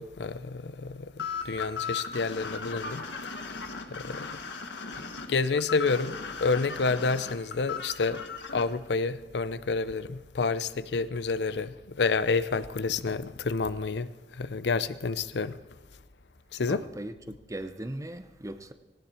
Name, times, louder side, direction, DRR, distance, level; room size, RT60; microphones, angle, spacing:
voice 1, 0.0-3.1 3.9-4.3 5.3-8.2 8.5-14.1 14.4-15.6 16.5-16.9, left 4 dB, 70° left, 0.6 m, -29 dB
sound 1, 1.2-8.6, left 5 dB, 90° left, 1.5 m, -37 dB
voice 2, 16.7-18.7, right 1 dB, 20° right, 0.7 m, -39 dB
18.0 x 18.0 x 4.4 m
head